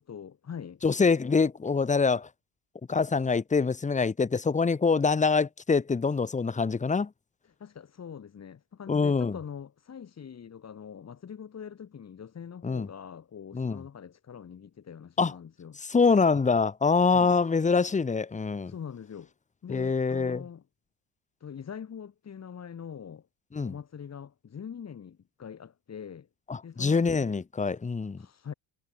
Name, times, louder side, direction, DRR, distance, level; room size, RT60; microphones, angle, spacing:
voice 1, 0.0-0.8 7.4-15.8 17.1-17.3 18.7-19.3 19.6-20.6 21.4-23.3 23.6-26.3 26.6-27.1 28.2-28.5, left 7 dB, 30° left, 4.8 m, -43 dB
voice 2, 0.8-2.3 2.9-7.1 8.9-9.4 12.6-12.9 13.5-13.8 15.2-15.3 15.9-18.7 19.7-20.4 23.5-23.7 26.5-28.2, left 4 dB, 15° left, 1.4 m, -25 dB
cardioid pair, 130°, 49 cm